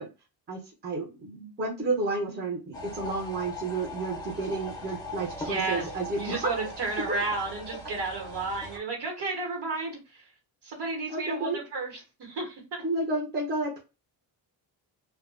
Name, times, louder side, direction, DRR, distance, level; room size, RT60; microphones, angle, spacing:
voice 1, 0.5-6.4 11.1-11.6 12.8-13.8, right 3 dB, 25° right, -1 dB, 0.7 m, -31 dB
sound 1, 2.7-8.8, left 1 dB, 10° left, 0.7 m, -40 dB
voice 2, 5.4-5.9 6.2-10.3 10.6-12.8, right 3 dB, 60° right, 1 dB, 1.2 m, -33 dB
2.4 x 2.3 x 2.4 m, 0.29 s
cardioid pair, 125°, 45 cm